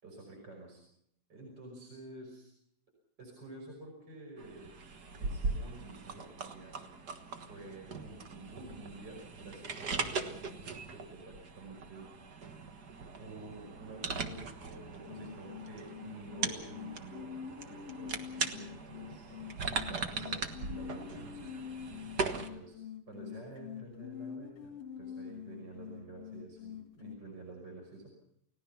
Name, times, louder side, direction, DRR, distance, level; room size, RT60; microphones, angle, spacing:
voice 1, 0.0-0.8 1.3-2.5 3.2-4.7 5.2-6.8 7.4-12.1 13.2-17.3 17.6-19.3 19.9-21.7 22.4-22.8 23.1-28.1, right 2 dB, 30° right, 0 dB, 6.0 m, -49 dB
sound 1, 4.4-22.5, right 4 dB, 60° right, 1.0 m, -40 dB
sound 2, 15.1-27.2, left 8 dB, 50° left, 2.4 m, -46 dB
30.0 x 18.0 x 5.8 m, 0.75 s
omnidirectional pair, 4.1 m